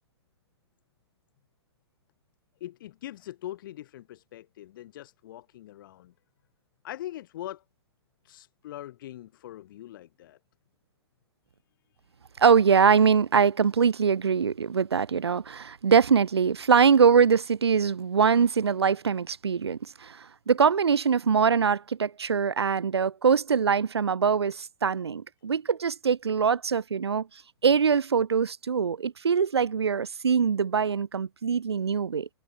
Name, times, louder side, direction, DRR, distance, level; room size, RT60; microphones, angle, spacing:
voice 1, 2.6-6.1 6.8-7.6 8.2-10.4, left 13 dB, 50° left, 7.8 m, -42 dB
voice 2, 12.4-27.3 27.6-32.3, right 6 dB, 70° right, 2.2 m, -23 dB
figure-of-eight pair, 115°, 14 cm